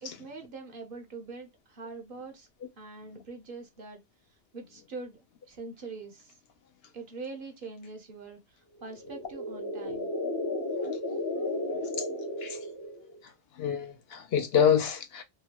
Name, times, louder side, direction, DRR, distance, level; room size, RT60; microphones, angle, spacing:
voice 1, 0.0-2.5 2.8-4.0 4.5-5.2 5.5-6.3 6.9-10.1, right 3 dB, 55° right, 0.8 m, -43 dB
sound 1, 8.8-13.2, left 1 dB, 25° left, 0.4 m, -34 dB
voice 2, 13.6-15.2, left 8 dB, 65° left, 0.7 m, -26 dB
2.9 x 2.3 x 2.8 m
omnidirectional pair, 1.2 m